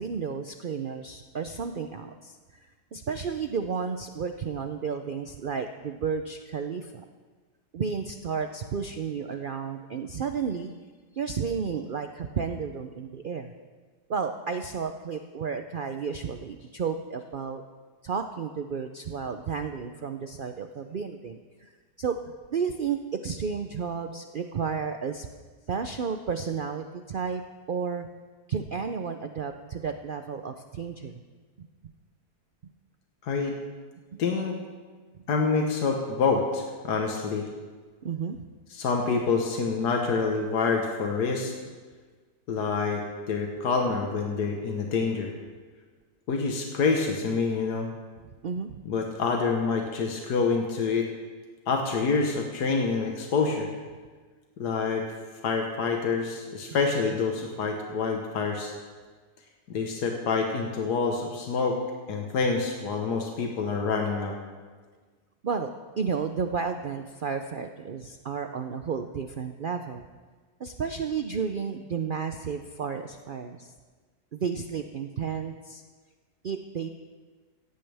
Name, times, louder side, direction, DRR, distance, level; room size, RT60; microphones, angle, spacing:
voice 1, 0.0-2.6 2.9-7.0 7.7-10.7 11.1-13.5 14.1-17.6 18.0-21.7 22.0-22.2 22.5-25.3 25.7-27.4 27.7-28.1 28.5-31.2 31.6-31.7 38.0-38.4 48.4-48.8 65.4-65.7 66.0-70.0 70.6-73.7 74.3-75.8 76.4-76.9, right 6 dB, 75° right, 7 dB, 0.4 m, -32 dB
voice 2, 33.2-33.5 34.2-34.6 35.3-37.5 38.7-41.5 42.5-45.3 46.3-47.9 48.9-51.1 51.7-53.7 54.6-55.1 55.4-58.7 59.7-61.8 62.1-64.3, left 4 dB, 85° left, 2 dB, 1.8 m, -27 dB
16.5 x 15.0 x 3.4 m, 1.4 s
omnidirectional pair, 1.7 m